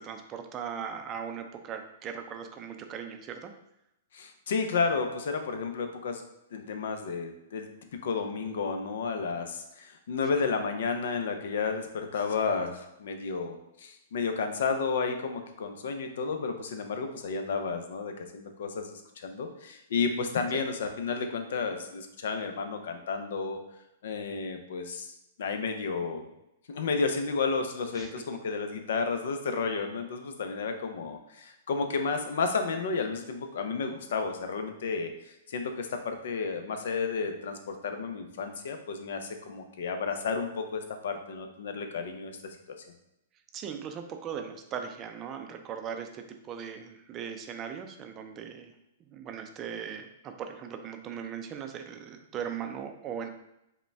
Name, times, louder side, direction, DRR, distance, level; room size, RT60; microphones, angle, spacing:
voice 1, 0.0-3.5 27.9-28.1 43.5-48.7 49.1-53.3, right 7 dB, 30° right, 6 dB, 0.4 m, -39 dB
voice 2, 4.1-6.2 6.5-7.7 8.0-23.6 24.0-25.1 25.4-26.2 26.7-42.3, left 4 dB, 70° left, 6 dB, 0.6 m, -32 dB
5.0 x 2.2 x 3.4 m, 0.85 s
hypercardioid pair, 135°, 0 cm